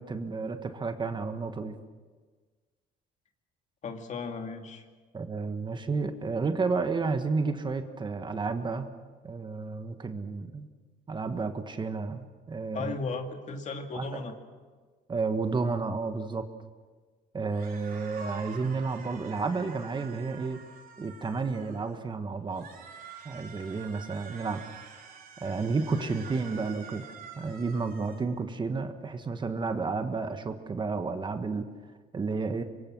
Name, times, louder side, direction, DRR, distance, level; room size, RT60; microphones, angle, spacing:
voice 1, 0.0-1.8 5.1-8.9 9.2-10.7 11.1-12.9 13.9-14.1 15.1-16.4 17.3-20.6 21.0-22.7 23.2-24.6 25.4-27.0 27.4-31.7 32.1-32.6, right 4 dB, 25° right, 8 dB, 1.6 m, -31 dB
voice 2, 3.8-4.8 12.7-14.3 26.0-26.2, left 4 dB, 45° left, 5 dB, 2.5 m, -36 dB
sound 1, 17.5-22.0 22.5-28.2, right 6 dB, 60° right, 4.3 m, -47 dB
26.0 x 23.0 x 6.3 m, 1.4 s
cardioid pair, 110°, 17 cm